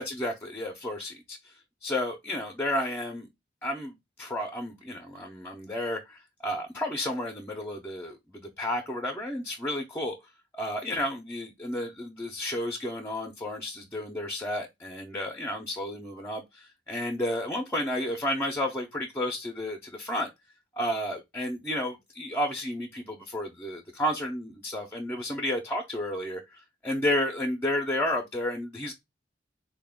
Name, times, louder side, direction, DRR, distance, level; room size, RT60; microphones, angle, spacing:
voice 1, 0.0-1.5 1.8-3.3 3.6-10.2 10.5-20.3 20.8-28.9, left 1 dB, 15° left, 0.5 m, -32 dB
4.0 x 2.2 x 3.4 m
head